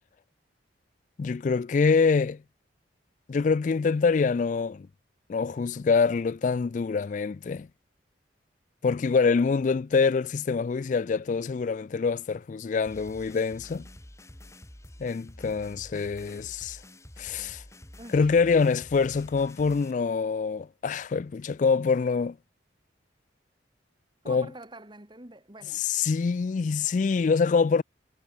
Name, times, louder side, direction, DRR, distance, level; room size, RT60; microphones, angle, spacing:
voice 1, 1.2-2.4 3.3-4.9 5.3-7.7 8.8-13.9 15.0-16.8 17.2-17.6 18.1-22.4 24.3-24.5 25.7-27.8, left 5 dB, 45° left, 0.3 m, -25 dB
sound 1, 12.9-19.9, left 1 dB, 15° left, 1.8 m, -48 dB
voice 2, 24.2-25.8, right 2 dB, 25° right, 2.7 m, -46 dB
head